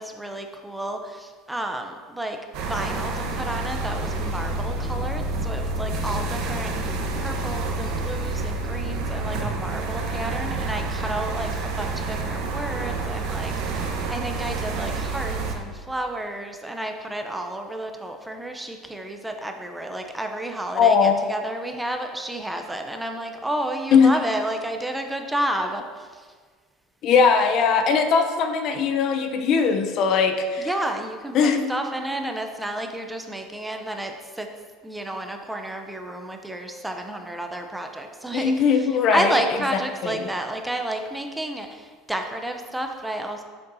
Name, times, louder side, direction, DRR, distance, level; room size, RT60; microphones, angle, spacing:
voice 1, 0.0-26.3 30.6-34.5 34.8-43.4, right 1 dB, 5° right, 4 dB, 0.6 m, -31 dB
sound 1, 2.5-15.5, right 3 dB, 65° right, 0.9 m, -28 dB
voice 2, 20.7-21.3 23.9-24.1 27.0-30.7 31.3-31.7 38.3-39.3 40.0-40.1, left 6 dB, 50° left, 6 dB, 0.6 m, -19 dB
8.1 x 6.7 x 2.7 m, 1.6 s
supercardioid pair, 125°, 0 cm